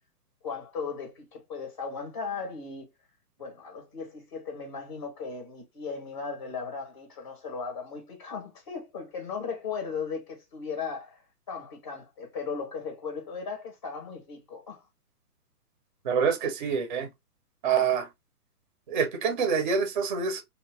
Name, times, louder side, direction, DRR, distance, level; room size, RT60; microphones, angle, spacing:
voice 1, 0.4-2.9 3.4-11.2 11.5-14.9, left 5 dB, 20° left, 0.6 m, -37 dB
voice 2, 16.0-17.1 17.6-18.1 18.9-20.4, right 6 dB, 30° right, 0.5 m, -26 dB
2.7 x 2.2 x 2.8 m
hypercardioid pair, 150°, 47 cm